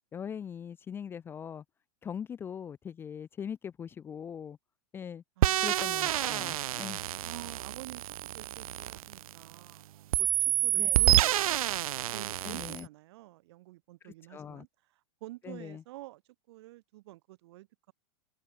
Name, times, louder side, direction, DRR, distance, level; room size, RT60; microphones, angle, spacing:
voice 1, 0.0-1.6 2.0-4.6 4.9-5.2 5.6-7.0 10.8-11.0 12.4-12.9 14.0-14.7 15.4-15.8, left 8 dB, 10° left, 1.1 m, -41 dB
voice 2, 5.4-5.7 7.2-11.6 12.1-14.7 15.2-16.2 16.5-17.9, right 18 dB, 50° right, 7.7 m, -49 dB
sound 1, 5.4-9.7 10.1-12.8, right 13 dB, 85° right, 0.6 m, -28 dB
supercardioid pair, 170°, 18 cm